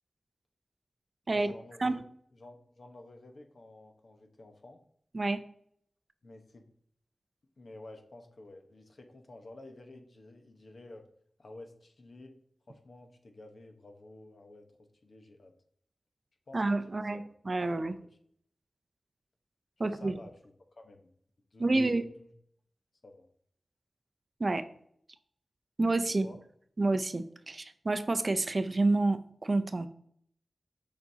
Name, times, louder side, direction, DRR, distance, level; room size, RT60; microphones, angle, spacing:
voice 1, 1.3-2.0 2.3-4.8 6.2-6.7 7.6-11.1 11.4-12.4 12.7-15.5 16.5-17.3 17.8-17.9 19.8-20.3 20.8-21.1 21.5-22.3 23.0-23.3 26.2-26.4, left 2 dB, 60° left, 4 dB, 1.0 m, -51 dB
voice 2, 16.5-17.9 19.8-20.2 21.6-22.1 24.4-24.7 25.8-26.3 26.8-29.9, right 2 dB, 40° right, 10 dB, 0.4 m, -29 dB
7.1 x 5.2 x 2.7 m, 0.64 s
wide cardioid pair, 95°, 0 cm